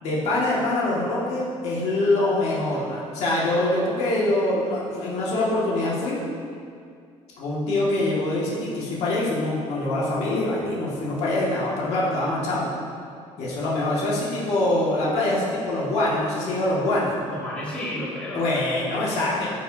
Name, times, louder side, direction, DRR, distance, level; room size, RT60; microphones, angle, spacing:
voice 1, 0.0-6.2 7.4-12.7 13.4-17.2 18.3-19.5, left 1 dB, 65° left, -6 dB, 1.9 m, -24 dB
voice 2, 17.3-19.5, left 1 dB, 10° left, -9 dB, 2.1 m, -33 dB
14.5 x 5.2 x 2.7 m, 2.3 s
cardioid pair, 150°, 12 cm